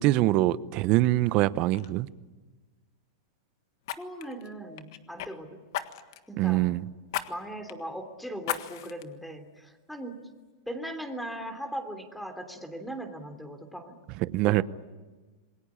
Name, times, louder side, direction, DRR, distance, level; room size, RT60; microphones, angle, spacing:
voice 1, 0.0-2.1 6.4-6.8 14.2-14.6, right 16 dB, 45° right, 0.8 m, -24 dB
Fire, 1.2-1.4 1.7-1.9 3.8-5.3 5.7-6.3 7.1-7.3 7.7-7.8 8.4-9.0 9.6-9.7, left 13 dB, 65° left, 1.6 m, -35 dB
voice 2, 3.9-5.6 6.3-6.7 7.3-10.3 10.7-14.0 14.4-14.6, right 1 dB, ahead, 3.1 m, -39 dB
27.5 x 20.5 x 8.7 m
hypercardioid pair, 130°, 2 cm